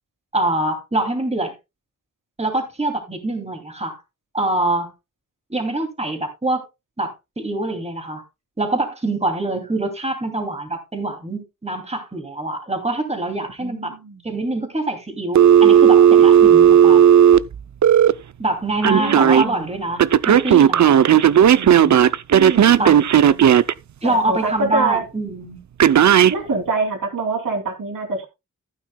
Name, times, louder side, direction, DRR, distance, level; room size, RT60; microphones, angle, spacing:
voice 1, 0.3-1.5 2.4-4.0 4.3-4.9 5.5-6.6 7.0-8.2 8.6-14.0 14.2-17.0 18.4-21.0 21.5-22.0 22.8-23.0 24.0-25.6, right 2 dB, 20° right, 2.6 m, -24 dB
voice 2, 13.6-14.2 18.7-19.7 22.3-23.4 24.0-25.0 26.3-28.3, right 3 dB, 90° right, 3.0 m, -25 dB
Telephone, 15.4-18.1 18.8-19.4 20.0-23.7 25.8-26.3, right 9 dB, 65° right, 0.5 m, -12 dB
14.5 x 9.1 x 2.2 m
wide cardioid pair, 105°, 31 cm